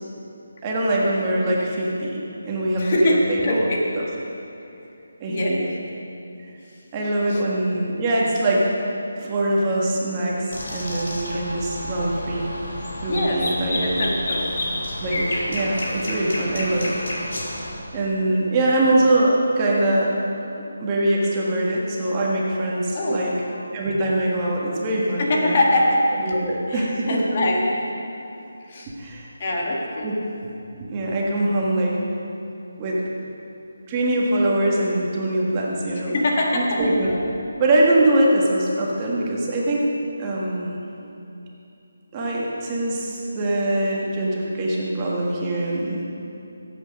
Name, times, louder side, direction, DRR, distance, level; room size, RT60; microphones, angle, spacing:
voice 1, 0.6-2.2 2.4-3.0 3.3-4.0 5.2-5.6 6.9-8.6 9.2-12.5 13.0-14.1 15.0-16.9 17.9-20.2 20.8-23.3 23.7-25.6 26.2-27.2 28.9-29.3 30.0-30.1 30.8-32.0 32.8-33.0 33.9-36.2 36.5-37.2 37.6-39.8 40.2-40.8 42.1-46.0, right 1 dB, 20° right, -4 dB, 1.5 m, -23 dB
voice 2, 2.8-3.2 3.4-3.8 5.3-5.7 7.3-7.4 13.1-13.4 13.8-14.5 18.3-18.4 22.9-23.6 25.2-26.0 26.7-27.7 28.6-28.9 29.4-30.1 36.1-36.8, left 1 dB, 35° left, -2 dB, 1.6 m, -23 dB
sound 1, 10.5-17.7, left 1 dB, 60° left, 3.2 m, -29 dB
13.5 x 8.4 x 5.3 m, 2.8 s
figure-of-eight pair, 165°, 0 cm